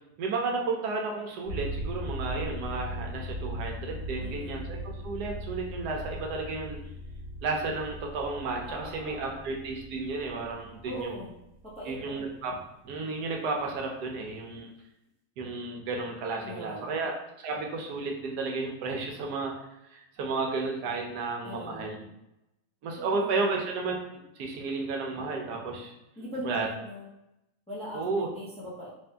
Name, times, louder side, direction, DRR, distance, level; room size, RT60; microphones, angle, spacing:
voice 1, 0.2-6.8 7.4-11.1 11.9-12.6 12.8-14.7 15.4-19.5 19.9-22.0 22.8-24.0 24.4-25.9 26.4-26.7 27.9-28.3, right 3 dB, 85° right, 1 dB, 1.3 m, -32 dB
sound 1, 1.4-12.3, equal, 55° left, 1.4 m, -39 dB
voice 2, 4.2-4.6 8.6-9.4 10.8-11.3 11.6-12.2 16.4-17.1 21.4-21.9 23.0-23.7 26.2-27.1 27.7-28.9, equal, 5° left, -7 dB, 0.6 m, -40 dB
3.4 x 2.6 x 3.3 m, 0.88 s
omnidirectional pair, 1.7 m